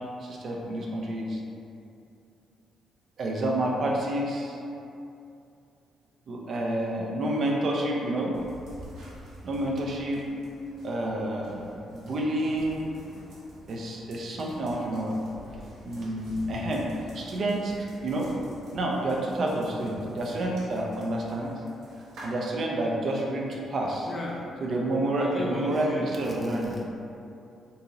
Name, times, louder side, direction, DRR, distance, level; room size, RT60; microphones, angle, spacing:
voice 1, 0.0-1.4 3.2-4.6 6.3-8.3 9.4-10.2 10.8-12.9 13.7-15.2 15.8-16.9 17.1-18.3 18.7-21.5 22.2-24.1 24.6-26.7, right 1 dB, 55° right, -2 dB, 0.5 m, -29 dB
sound 1, 8.3-22.3, equal, 70° right, 1.0 m, -48 dB
voice 2, 24.0-24.5 25.2-26.6, left 1 dB, 25° left, -2 dB, 0.6 m, -36 dB
4.0 x 2.8 x 2.8 m, 2.7 s
cardioid pair, 90°, 0 cm